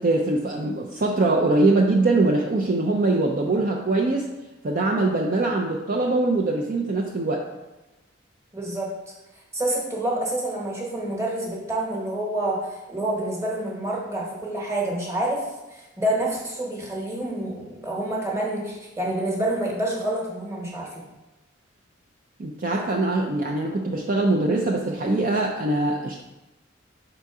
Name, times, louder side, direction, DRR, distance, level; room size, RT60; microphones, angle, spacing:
voice 1, 0.0-4.3 4.6-7.4 22.4-26.2, right 2 dB, 40° right, 0 dB, 0.5 m, -22 dB
voice 2, 8.5-8.9 9.5-21.1, right 1 dB, 15° right, -3 dB, 1.2 m, -28 dB
5.6 x 4.0 x 4.7 m, 1.0 s
head